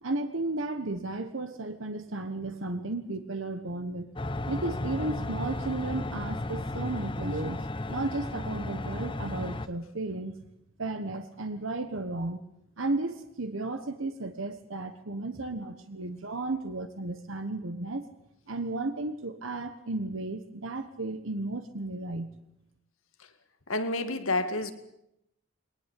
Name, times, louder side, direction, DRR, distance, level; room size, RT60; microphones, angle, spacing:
voice 1, 0.0-4.1 4.5-10.4 10.8-12.4 12.8-18.0 18.5-22.3, right 2 dB, 70° right, 8 dB, 1.3 m, -34 dB
sound 1, 4.2-9.7, left 2 dB, 25° left, 0.8 m, -34 dB
voice 2, 23.7-24.7, left 2 dB, 80° left, 8 dB, 2.3 m, -29 dB
22.0 x 19.5 x 8.4 m, 0.81 s
head